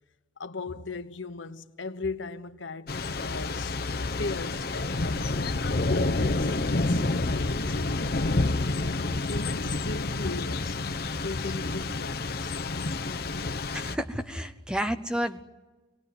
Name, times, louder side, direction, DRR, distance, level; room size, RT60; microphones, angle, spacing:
voice 1, 0.4-3.8 4.2-8.5 9.3-10.8 11.2-13.0, left 3 dB, 85° left, 1.1 m, -38 dB
Thunder / Rain, 2.9-13.9, left 2 dB, 55° left, 0.8 m, -29 dB
voice 2, 13.7-15.4, equal, 5° right, 0.9 m, -31 dB
26.0 x 18.5 x 9.6 m
head